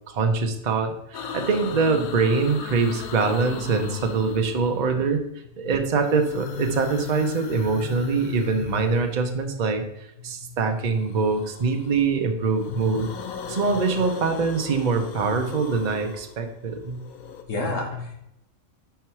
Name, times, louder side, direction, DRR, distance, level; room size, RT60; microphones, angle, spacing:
voice 1, 0.1-5.2 5.6-9.9 10.2-13.1 13.5-17.0, right 4 dB, 40° right, 5 dB, 0.7 m, -24 dB
sound 1, 1.1-5.1 5.8-9.6 10.9-12.1 12.4-17.4, left 8 dB, 85° left, 1.2 m, -37 dB
voice 2, 12.7-13.0 13.4-13.5 17.5-18.2, left 2 dB, 65° left, 1 dB, 1.7 m, -30 dB
4.6 x 4.6 x 5.7 m, 0.81 s
omnidirectional pair, 1.5 m